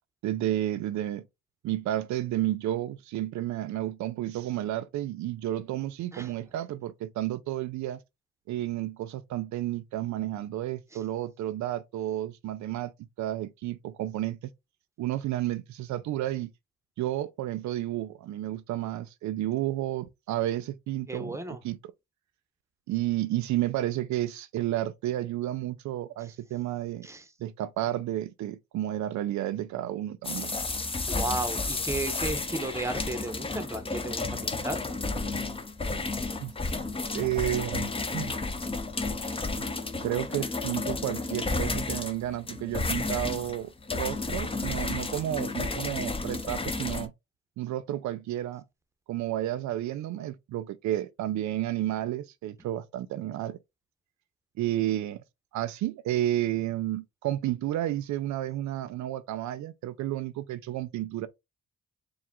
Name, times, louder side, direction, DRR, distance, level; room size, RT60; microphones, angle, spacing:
voice 1, 0.2-1.2 1.6-8.0 8.5-12.9 13.2-14.4 15.0-16.5 17.0-21.8 22.9-27.1 27.4-30.6 35.9-36.0 36.4-36.5 37.1-38.3 39.2-39.7 40.0-47.1 47.6-48.6 49.1-53.6 54.6-55.2 55.5-61.3, right 13 dB, 70° right, 0.4 m, -31 dB
voice 2, 21.1-21.6 27.0-27.2 31.1-34.8, right 2 dB, 10° right, 0.9 m, -34 dB
sound 1, 30.2-47.1, left 3 dB, 20° left, 0.7 m, -32 dB
4.8 x 2.4 x 3.5 m
cardioid pair, 90°, 30 cm